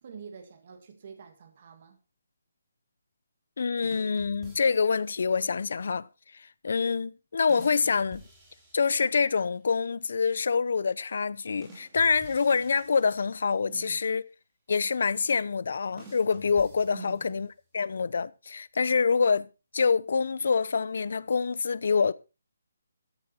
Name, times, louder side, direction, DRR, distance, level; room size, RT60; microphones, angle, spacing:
voice 1, 0.0-2.0 13.6-14.2 16.9-17.3, right 6 dB, 30° right, 2.0 m, -46 dB
voice 2, 3.6-6.1 6.3-8.2 8.7-14.2 14.7-17.5 17.7-19.5 19.7-22.1, left 5 dB, 45° left, 0.7 m, -26 dB
sound 1, 3.8-5.2 7.5-9.5 11.6-13.8 16.0-17.6, right 2 dB, 10° right, 2.5 m, -52 dB
13.5 x 10.5 x 4.3 m
hypercardioid pair, 180°, 0 cm